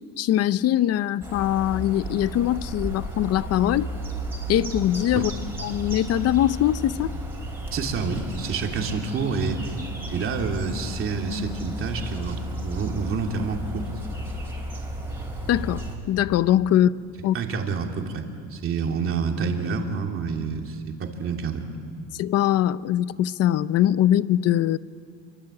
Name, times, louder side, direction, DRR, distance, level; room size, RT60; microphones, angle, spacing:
voice 1, 0.2-3.9 4.5-5.3 5.6-7.1 15.5-17.4 22.1-24.8, left 12 dB, 50° left, 16 dB, 0.6 m, -22 dB
sound 1, 1.2-16.0, right 1 dB, 5° right, 4.5 m, -33 dB
voice 2, 7.7-9.8 10.1-13.8 17.3-21.7, right 5 dB, 40° right, 2 dB, 2.9 m, -28 dB
28.5 x 24.0 x 8.7 m, 2.2 s
cardioid pair, 165°, 32 cm